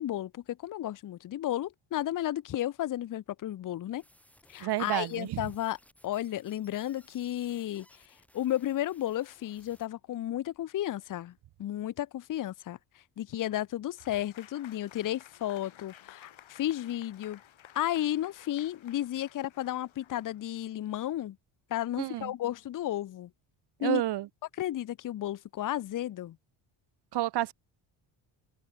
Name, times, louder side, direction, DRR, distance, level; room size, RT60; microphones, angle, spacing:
voice 1, 0.0-4.0 4.5-5.8 6.0-7.9 8.3-11.3 11.6-12.8 13.2-17.4 17.7-21.4 21.7-23.3 23.8-24.0 24.6-26.4, left 13 dB, 40° left, 0.6 m, -33 dB
sound 1, 4.0-9.9, equal, 5° left, 2.6 m, -62 dB
voice 2, 4.6-5.5 22.0-22.3 23.8-24.3 27.1-27.5, right 14 dB, 55° right, 0.7 m, -30 dB
Applause / Crowd, 14.0-20.8, left 11 dB, 65° left, 3.6 m, -55 dB
open air
cardioid pair, 75°, 50 cm